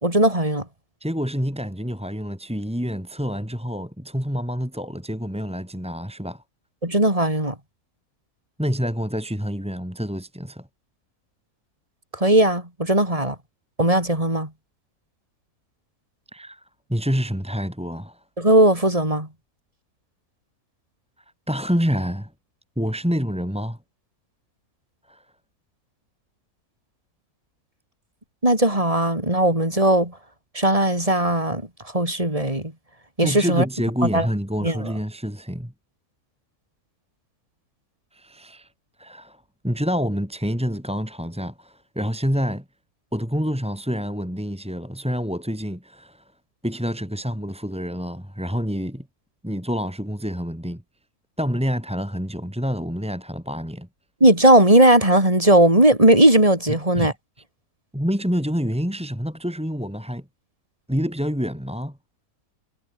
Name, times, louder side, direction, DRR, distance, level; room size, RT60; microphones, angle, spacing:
voice 1, 0.0-0.6 6.8-7.5 12.1-13.4 13.8-14.5 18.4-19.3 28.4-30.1 30.5-31.6 31.9-32.7 33.2-33.6 34.1-34.3 34.6-34.9 54.2-57.1, right 1 dB, 20° right, 5.7 m, -18 dB
voice 2, 1.0-6.4 8.6-10.7 16.3-18.2 21.5-22.3 22.8-23.8 25.1-25.3 33.2-35.7 38.1-38.7 39.0-42.6 43.1-46.3 46.6-49.1 49.4-50.8 51.4-53.9 57.0-57.1 57.9-60.2 60.9-62.0, equal, 5° right, 4.6 m, -27 dB
omnidirectional pair, 1.6 m